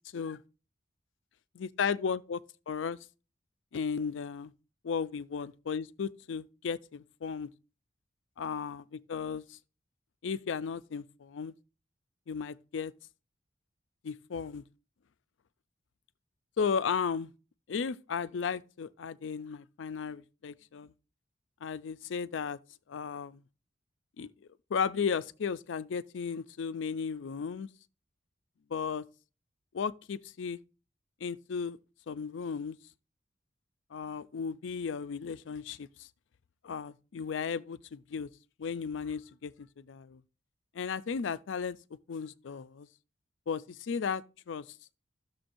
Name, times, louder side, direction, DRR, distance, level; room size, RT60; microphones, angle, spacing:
voice 1, 1.5-2.4 2.7-3.0 3.7-4.5 4.8-7.5 8.4-9.6 10.2-11.5 12.3-12.9 14.0-14.6 16.6-17.3 17.7-20.9 21.6-22.6 22.9-23.4 24.2-24.3 24.7-27.7 28.7-29.0 29.7-30.6 31.2-31.8 32.1-32.8 33.9-36.1 36.6-38.3 38.6-40.2 40.7-41.8 42.1-42.9 43.5-44.6, left 6 dB, 85° left, 0.4 m, -35 dB
12.5 x 6.8 x 2.6 m
head